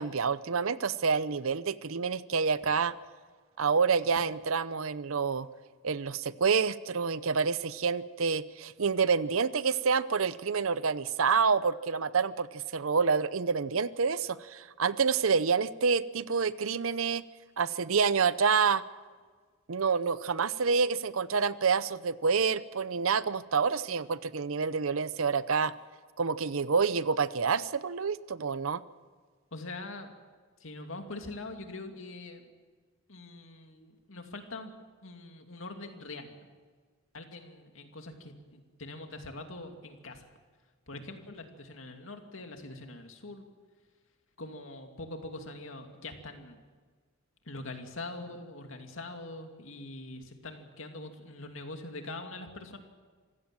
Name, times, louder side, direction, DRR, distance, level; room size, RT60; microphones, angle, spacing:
voice 1, 0.0-2.9 3.6-5.5 5.8-17.2 17.6-18.8 19.7-25.7 26.2-28.8, right 5 dB, 70° right, 16 dB, 0.7 m, -28 dB
voice 2, 29.5-30.1 30.6-32.5 33.1-34.7 35.0-36.5 37.1-40.3 40.9-43.5 44.4-46.6 47.4-52.8, left 2 dB, 65° left, 4 dB, 2.6 m, -43 dB
26.5 x 16.0 x 7.6 m, 1.5 s
head